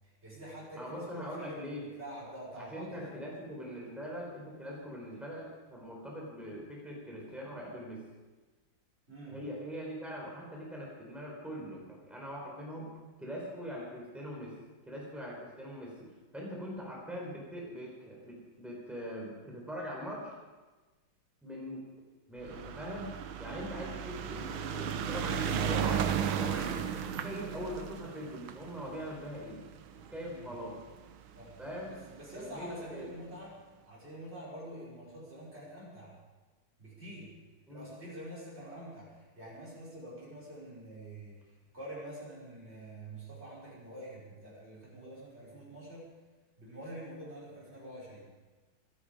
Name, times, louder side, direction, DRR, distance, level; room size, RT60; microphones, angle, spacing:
voice 1, 0.0-3.1 9.1-9.4 30.2-30.5 31.4-31.6 31.8-33.5 33.9-36.1 36.8-37.3 37.7-46.1 46.6-48.2, right 1 dB, 30° right, -7 dB, 6.2 m, -46 dB
voice 2, 0.8-1.8 2.6-8.0 9.3-12.9 13.2-14.6 14.9-20.3 21.4-21.8 22.3-29.6 30.0-30.8 31.6-31.9 32.3-33.1 37.7-37.9, equal, ahead, -3 dB, 4.5 m, -42 dB
sound 1, 22.4-30.9 31.7-31.8 32.0-32.1 32.4-32.5, right 8 dB, 85° right, 1.8 m, -34 dB
25.0 x 11.5 x 5.2 m, 1.3 s
omnidirectional pair, 2.2 m